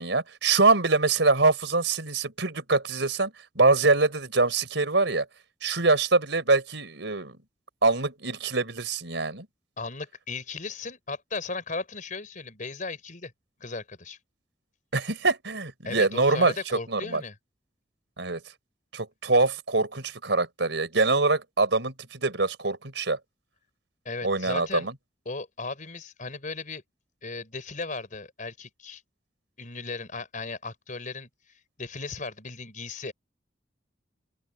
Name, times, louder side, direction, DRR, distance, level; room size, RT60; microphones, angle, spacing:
voice 1, 0.0-5.3 5.6-7.4 7.8-9.5 14.9-16.5 16.9-17.2 18.2-18.4 18.9-23.2 24.2-24.9, right 3 dB, 90° right, 4.1 m, -24 dB
voice 2, 9.8-13.3 13.6-14.2 15.8-17.4 24.0-24.9 25.2-26.8 27.2-29.0 29.6-33.1, left 3 dB, 45° left, 4.6 m, -36 dB
open air
head